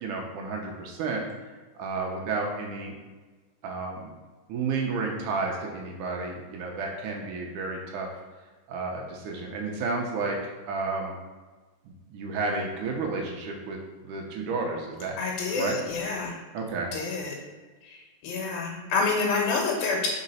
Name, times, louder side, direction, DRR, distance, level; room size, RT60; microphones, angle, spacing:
voice 1, 0.0-1.2 1.8-3.0 3.6-4.1 4.5-8.1 8.7-10.4 10.7-11.1 11.9-15.2 15.5-15.8 16.5-16.9, right 3 dB, 75° right, 0 dB, 2.1 m, -31 dB
voice 2, 15.2-16.3 16.9-17.3 17.8-20.1, left 4 dB, 85° left, -1 dB, 3.1 m, -28 dB
5.0 x 4.9 x 5.5 m, 1.3 s
omnidirectional pair, 4.1 m